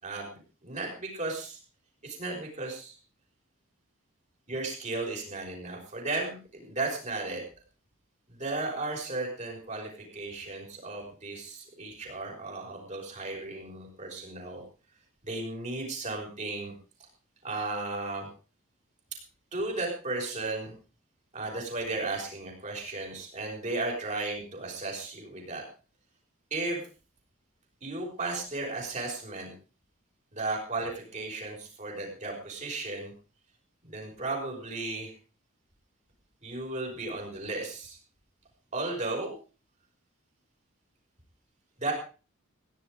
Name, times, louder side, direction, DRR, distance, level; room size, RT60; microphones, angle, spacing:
voice 1, 0.0-1.6 2.0-3.0 4.5-7.4 8.3-14.6 15.2-16.7 17.4-18.3 19.5-20.7 21.3-25.6 26.5-26.8 27.8-29.5 30.3-33.1 33.8-35.1 36.4-38.0 38.7-39.3 41.8-41.9, right 2 dB, 35° right, -1 dB, 5.8 m, -35 dB
17.0 x 11.0 x 5.1 m, 0.36 s
head